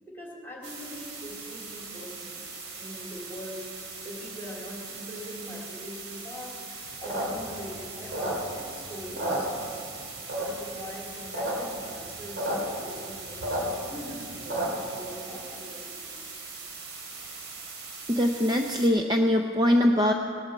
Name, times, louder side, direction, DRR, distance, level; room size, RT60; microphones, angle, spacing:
voice 1, 0.0-2.4 2.8-9.8 10.4-16.3, equal, 10° left, -3 dB, 3.0 m, -42 dB
sound 1, 0.6-18.9, right 4 dB, 90° right, 2.5 m, -41 dB
sound 2, 6.9-8.7 9.0-9.9 10.3-10.7 11.1-11.5 11.8-11.9 12.0-12.6 12.9-14.9, right 1 dB, 55° right, 2.9 m, -31 dB
voice 2, 18.1-20.1, left 1 dB, 20° right, 3 dB, 0.6 m, -22 dB
18.0 x 12.5 x 4.8 m, 2.3 s
head